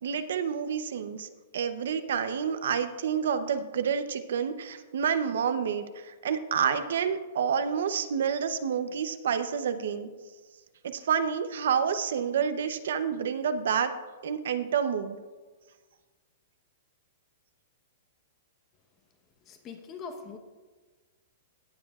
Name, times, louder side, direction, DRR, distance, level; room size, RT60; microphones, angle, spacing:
voice 1, 0.0-10.1 10.8-13.9 14.2-15.2, right 7 dB, 75° right, 10 dB, 0.7 m, -29 dB
voice 2, 19.5-20.4, left 5 dB, 25° left, 5 dB, 1.0 m, -42 dB
18.0 x 7.6 x 2.4 m, 1.3 s
hypercardioid pair, 160°, 0 cm